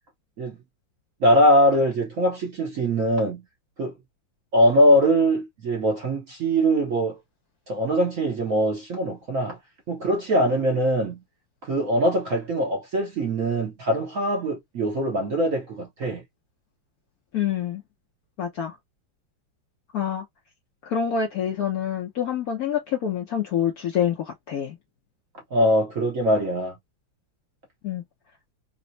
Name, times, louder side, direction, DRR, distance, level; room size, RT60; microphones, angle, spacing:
voice 1, 1.2-3.4 3.8-3.9 4.5-7.2 7.7-9.6 9.9-11.2 11.6-16.2 25.5-26.7, equal, 55° right, 0.9 m, -22 dB
voice 2, 17.3-17.8 18.4-18.7 19.9-20.2 20.8-24.8 27.8-28.0, left 8 dB, 65° left, 0.9 m, -26 dB
4.2 x 2.0 x 2.6 m
omnidirectional pair, 2.3 m